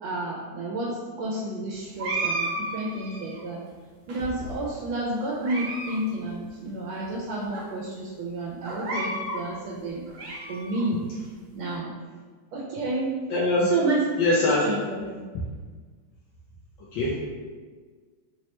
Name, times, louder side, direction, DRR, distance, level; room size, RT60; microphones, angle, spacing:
voice 1, 0.0-3.6 4.1-10.1 10.5-11.0 11.5-11.9 12.5-13.1 13.6-14.0 14.4-14.8 15.1-15.2, right 2 dB, 85° right, -3 dB, 1.4 m, -30 dB
cat miaw, 2.0-3.4 4.1-4.8 5.2-6.0 6.2-6.3 7.0-7.1 7.5-7.6 8.6-9.4 9.9-10.8, right 2 dB, 65° right, 1.1 m, -33 dB
voice 2, 13.3-13.7 14.2-14.6 16.9-17.2, left 2 dB, 80° left, -6 dB, 1.3 m, -22 dB
4.5 x 2.1 x 2.9 m, 1.5 s
omnidirectional pair, 2.1 m